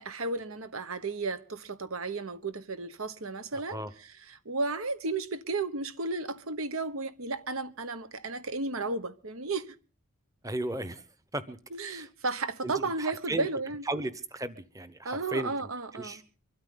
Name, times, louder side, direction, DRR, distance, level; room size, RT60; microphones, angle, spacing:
voice 1, 0.0-3.8 4.4-9.7 11.7-13.8 15.0-16.2, right 3 dB, 80° right, 1.2 m, -33 dB
voice 2, 3.5-3.9 10.4-11.0 11.3-11.6 11.8-12.1 12.6-13.5 13.8-16.3, right 2 dB, 15° right, 1.0 m, -36 dB
24.0 x 13.0 x 3.9 m
head